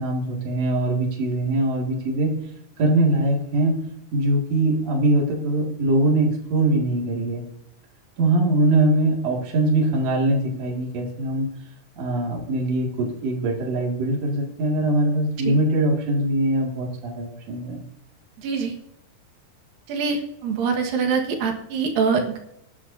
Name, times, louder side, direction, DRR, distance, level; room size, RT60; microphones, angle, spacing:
voice 1, 0.0-2.3 2.8-3.8 4.1-7.4 8.2-11.5 12.0-17.8, right 2 dB, 50° right, -1 dB, 3.3 m, -22 dB
voice 2, 18.4-18.7 19.9-22.4, right 5 dB, 80° right, 3 dB, 3.3 m, -24 dB
22.5 x 10.0 x 2.8 m, 0.81 s
omnidirectional pair, 4.1 m